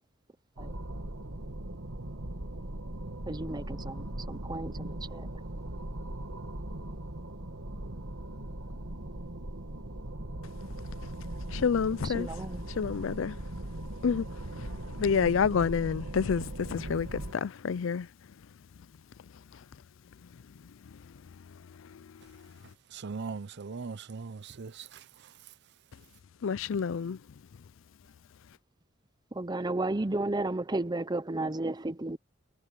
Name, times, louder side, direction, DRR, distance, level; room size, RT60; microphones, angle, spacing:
sound 1, 0.6-17.3, right 1 dB, 85° right, 2.2 m, -39 dB
voice 1, 3.3-5.3 12.0-12.7 29.3-32.2, right 2 dB, 20° right, 0.7 m, -33 dB
voice 2, 11.5-12.3 12.8-13.4 14.0-14.3 14.5-18.1 26.4-27.2, left 6 dB, 65° left, 0.4 m, -29 dB
voice 3, 22.9-25.0, right 5 dB, 55° right, 0.6 m, -39 dB
head